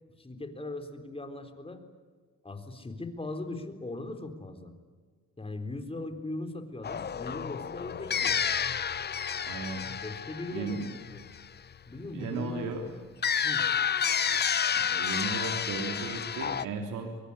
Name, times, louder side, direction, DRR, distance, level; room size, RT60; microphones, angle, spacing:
voice 1, 0.2-1.8 2.4-4.7 5.4-8.4 10.0-11.3 11.9-13.0 13.4-13.7, left 2 dB, 20° left, 7 dB, 3.9 m, -39 dB
sound 1, 6.8-11.6 13.2-16.7, left 7 dB, 35° left, 0.7 m, -30 dB
voice 2, 9.4-9.8 10.5-10.9 12.1-12.9 14.7-17.2, right 4 dB, 80° right, 4 dB, 3.3 m, -35 dB
23.5 x 23.5 x 9.9 m, 1.5 s
cardioid pair, 90°, 30 cm